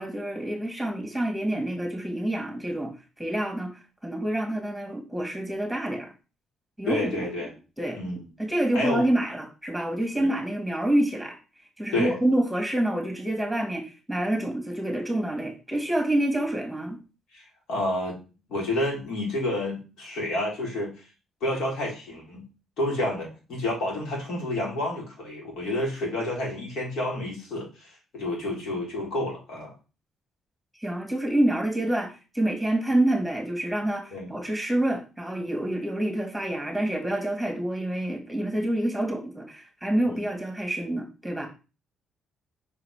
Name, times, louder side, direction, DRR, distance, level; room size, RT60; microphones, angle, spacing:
voice 1, 0.0-2.9 3.2-3.7 4.0-6.1 6.8-7.2 7.8-8.0 8.4-11.4 11.8-17.0 30.8-41.5, right 1 dB, ahead, 2 dB, 2.7 m, -27 dB
voice 2, 6.9-7.5 7.9-8.2 8.7-9.1 10.2-10.3 11.9-12.1 17.3-17.4 17.7-18.2 18.5-20.9 21.4-22.4 22.8-29.7 34.1-34.3, left 1 dB, 75° left, -2 dB, 4.1 m, -29 dB
5.7 x 4.8 x 5.1 m, 0.32 s
cardioid pair, 90°, 0 cm